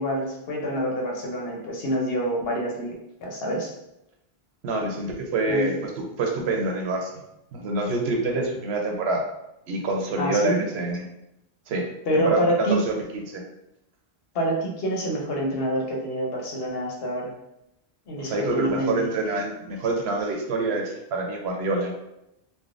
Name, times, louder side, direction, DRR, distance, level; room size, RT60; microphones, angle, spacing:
voice 1, 0.0-2.9 3.2-3.7 5.5-5.6 10.2-10.7 12.1-12.8 14.3-17.3 18.1-18.9, equal, 70° left, -1 dB, 0.9 m, -26 dB
voice 2, 4.6-5.7 6.2-7.1 7.5-9.2 9.7-11.0 11.7-11.9 12.1-13.4 18.2-21.9, right 2 dB, 85° right, 1 dB, 0.9 m, -26 dB
3.4 x 2.1 x 2.4 m, 0.87 s
omnidirectional pair, 1.1 m